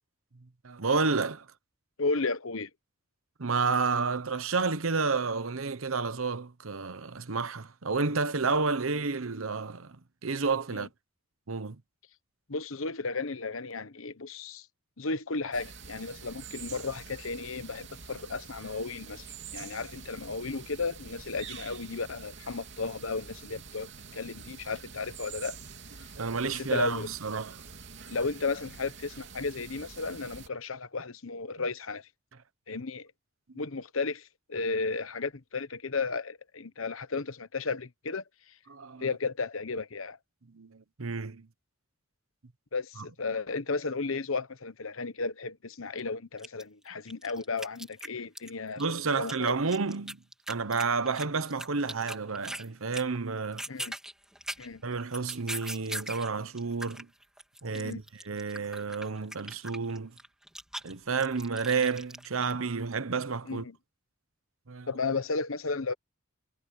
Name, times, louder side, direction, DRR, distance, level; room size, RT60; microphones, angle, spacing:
voice 1, 0.6-1.5 3.4-10.9 11.5-11.8 19.6-19.7 26.2-27.6 38.7-39.1 40.5-41.5 43.0-43.1 48.8-50.2 50.5-53.6 54.8-57.1 57.6-60.1 60.8-63.6 64.7-64.9, right 4 dB, 80° right, 1.0 m, -30 dB
voice 2, 2.0-2.7 10.7-10.9 12.5-14.7 15.0-19.2 19.5-25.6 26.4-27.1 28.1-32.1 32.7-33.1 33.5-38.2 39.0-40.2 42.7-48.8 49.1-49.5 53.7-53.9 54.6-54.8 57.7-58.0 63.5-63.8 64.9-65.9, left 4 dB, 75° left, 1.1 m, -34 dB
sound 1, 15.5-30.5, right 6 dB, 60° right, 3.1 m, -46 dB
sound 2, 46.0-46.1 46.4-48.5 48.8-52.7 52.9-53.2 53.4-56.3 56.6-62.5, right 1 dB, 5° right, 3.0 m, -40 dB
head